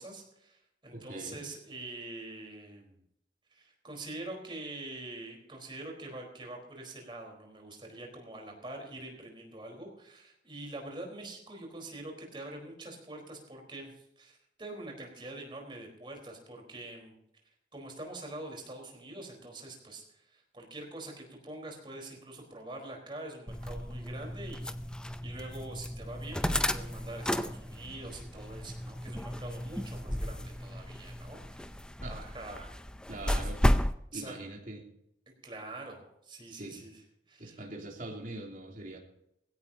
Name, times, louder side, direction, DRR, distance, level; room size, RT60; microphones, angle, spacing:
voice 1, 0.0-3.0 3.5-17.1 17.7-24.7 25.2-31.7 32.1-32.8 33.4-33.5 34.1-34.4 35.4-37.0 37.3-37.6, right 2 dB, 30° right, 2 dB, 4.2 m, -45 dB
voice 2, 0.9-1.4 32.0-32.2 33.1-33.6 34.1-34.8 36.5-36.8 37.4-39.0, right 2 dB, 50° right, -1 dB, 3.1 m, -42 dB
sound 1, 23.5-33.9, equal, 5° left, 0.5 m, -33 dB
20.5 x 16.5 x 2.8 m, 0.79 s
head